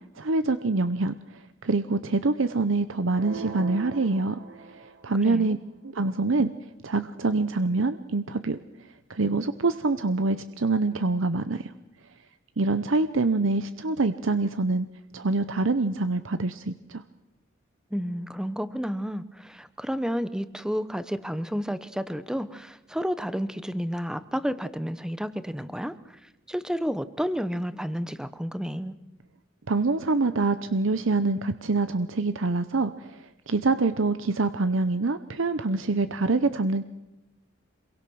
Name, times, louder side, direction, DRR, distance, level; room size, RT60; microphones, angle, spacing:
voice 1, 0.2-1.1 1.6-4.4 5.0-5.6 5.9-6.5 6.8-8.6 9.1-11.6 12.6-14.9 15.1-17.0 29.7-32.9 33.5-36.9, right 3 dB, 85° right, 11 dB, 0.8 m, -25 dB
sound 1, 3.1-5.2, right 5 dB, 65° right, 1.8 m, -40 dB
voice 2, 5.2-5.7 17.9-26.2 26.5-28.9, equal, 5° right, 13 dB, 0.9 m, -31 dB
27.0 x 22.5 x 6.3 m, 0.95 s
head